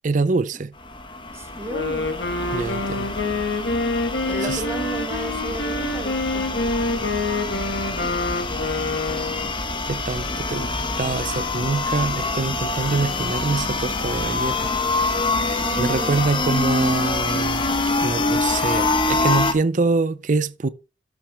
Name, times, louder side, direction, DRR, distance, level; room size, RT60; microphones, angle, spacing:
voice 1, 0.0-0.7 2.5-3.1 4.4-4.6 9.9-14.7 15.4-17.6 18.0-20.7, right 3 dB, 45° right, 0.5 m, -25 dB
sound 1, 0.8-19.5, left 3 dB, 30° left, 1.1 m, -25 dB
voice 2, 1.3-2.1 4.3-6.5 15.6-16.2, right 1 dB, 15° right, 1.2 m, -33 dB
Wind instrument woodwind instrument, 1.6-9.5, left 2 dB, 80° left, 1.6 m, -26 dB
13.0 x 6.0 x 3.4 m
head